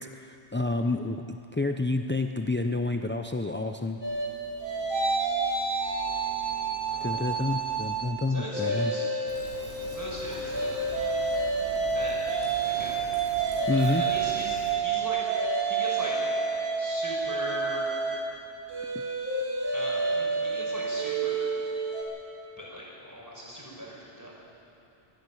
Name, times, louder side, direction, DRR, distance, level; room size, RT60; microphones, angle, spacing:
voice 1, 0.0-4.0 7.0-8.9 13.7-14.0, left 2 dB, 20° left, 5 dB, 0.3 m, -29 dB
sound 1, 4.0-8.1 8.5-22.0, right 4 dB, 55° right, 4.7 m, -29 dB
voice 2, 6.9-7.4 8.3-9.1 9.9-10.9 11.9-12.2 12.6-13.0 13.7-15.2 15.7-16.1 16.8-17.9 19.7-21.4 22.6-24.3, equal, 15° right, -4 dB, 5.6 m, -39 dB
Fill (with liquid), 9.3-14.7, equal, 85° right, 5.1 m, -44 dB
25.0 x 10.5 x 9.9 m, 3.0 s
omnidirectional pair, 1.2 m